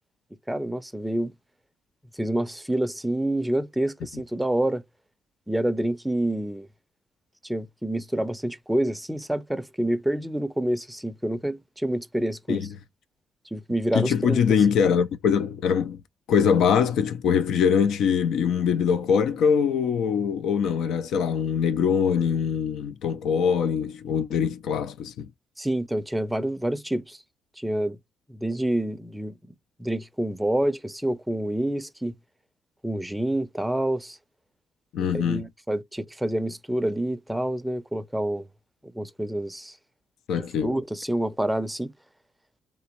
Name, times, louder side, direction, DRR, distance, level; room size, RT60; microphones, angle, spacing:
voice 1, 0.5-1.3 2.1-4.8 5.5-6.7 7.4-12.7 13.5-14.6 25.6-27.2 27.6-28.0 28.3-29.3 29.8-32.1 32.8-34.2 35.1-38.5 38.8-39.8 40.3-41.9, right 1 dB, 5° right, 0.5 m, -27 dB
voice 2, 13.9-16.0 16.3-25.3 34.9-35.4 40.3-40.7, left 7 dB, 80° left, 0.4 m, -23 dB
3.3 x 2.9 x 3.0 m
cardioid pair, 90°, 0 cm